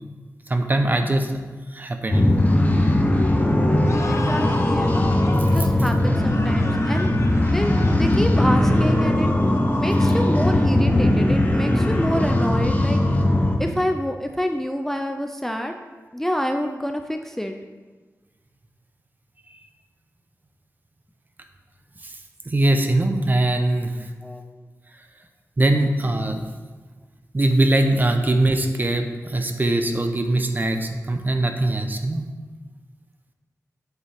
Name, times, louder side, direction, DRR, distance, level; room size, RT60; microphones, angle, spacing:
voice 1, 0.5-1.3 1.7-2.4 5.5-5.7 22.0-22.1 22.5-23.9 25.6-26.5 27.3-32.2, right 1 dB, 30° right, 5 dB, 0.8 m, -21 dB
sound 1, 2.1-13.6, left 1 dB, 25° left, 1.0 m, -19 dB
sound 2, 3.8-10.3, left 3 dB, 55° left, 0.7 m, -36 dB
voice 2, 4.1-5.0 5.4-7.1 7.5-9.3 9.8-13.3 13.6-15.8 16.1-17.6 24.2-24.6, equal, 5° left, 4 dB, 0.4 m, -27 dB
8.1 x 7.9 x 3.5 m, 1.3 s
wide cardioid pair, 95°, 6 cm